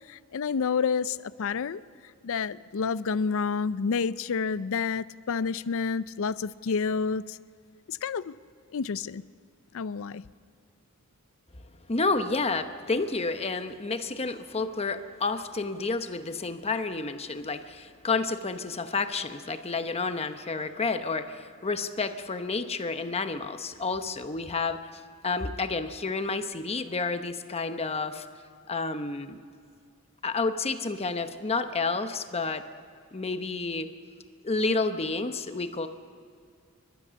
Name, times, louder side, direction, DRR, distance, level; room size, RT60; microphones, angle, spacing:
voice 1, 0.1-1.8 2.2-7.4 7.9-8.3 8.7-9.2 9.7-10.2, left 5 dB, 65° left, 0.5 m, -29 dB
voice 2, 11.9-28.3 28.7-29.4 30.2-32.6 33.1-33.9 34.4-35.9, left 3 dB, 30° left, 0.9 m, -30 dB
29.5 x 12.5 x 7.0 m
head